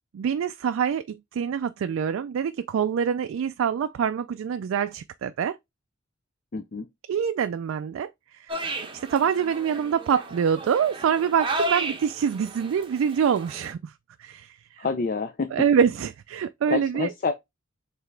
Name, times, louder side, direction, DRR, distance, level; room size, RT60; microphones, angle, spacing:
voice 1, 0.1-5.6 7.1-13.9 14.2-14.9 15.5-17.1, right 7 dB, 80° right, 0.3 m, -25 dB
voice 2, 6.5-6.9 14.8-15.5 16.7-17.3, left 4 dB, 45° left, 0.4 m, -28 dB
sound 1, 8.5-13.7, right 2 dB, 25° right, 0.8 m, -33 dB
4.8 x 3.3 x 3.3 m
head